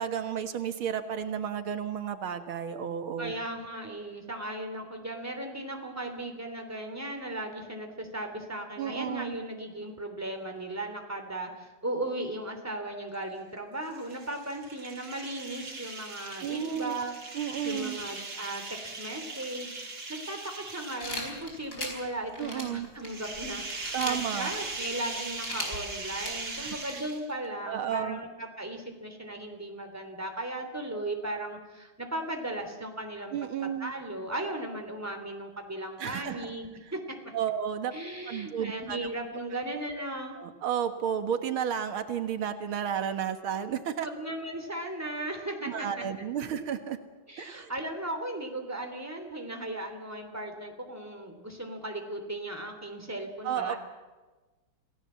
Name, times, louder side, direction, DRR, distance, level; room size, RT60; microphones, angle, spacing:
voice 1, 0.0-3.3 8.8-9.4 16.4-17.0 17.3-18.0 22.4-22.9 23.9-24.5 26.6-26.8 27.7-28.2 33.3-33.9 36.0-36.5 37.3-37.9 38.3-39.1 40.4-44.1 45.7-47.0 47.4-47.7 53.4-53.8, right 8 dB, 85° right, 8 dB, 2.3 m, -32 dB
voice 2, 3.2-17.1 17.6-33.5 33.8-37.2 37.9-40.4 44.0-46.0 47.3-53.8, right 1 dB, 5° right, 4 dB, 3.2 m, -37 dB
sound 1, 13.8-21.6 23.0-27.5, right 3 dB, 50° right, 3.6 m, -40 dB
sound 2, 21.0-27.0, left 1 dB, 40° left, 5.3 m, -39 dB
27.5 x 18.0 x 7.6 m, 1.2 s
omnidirectional pair, 2.2 m